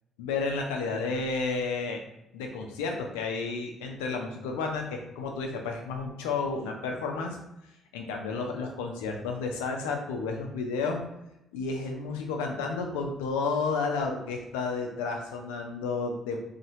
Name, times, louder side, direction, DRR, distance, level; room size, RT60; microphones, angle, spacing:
voice 1, 0.2-2.0 2.3-7.4 7.9-11.0 11.5-16.4, left 4 dB, 75° left, 2 dB, 0.6 m, -31 dB
4.1 x 2.8 x 2.7 m, 0.86 s
figure-of-eight pair, 45°, 0 cm